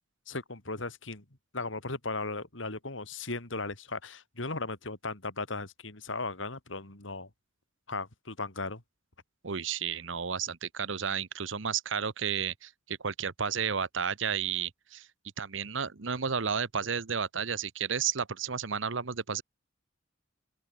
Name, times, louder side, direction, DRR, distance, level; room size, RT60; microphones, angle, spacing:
voice 1, 0.3-1.2 1.5-7.3 7.9-8.8, left 3 dB, 75° left, 3.2 m, -37 dB
voice 2, 9.4-15.1 15.4-19.4, right 7 dB, 75° right, 1.0 m, -32 dB
open air
head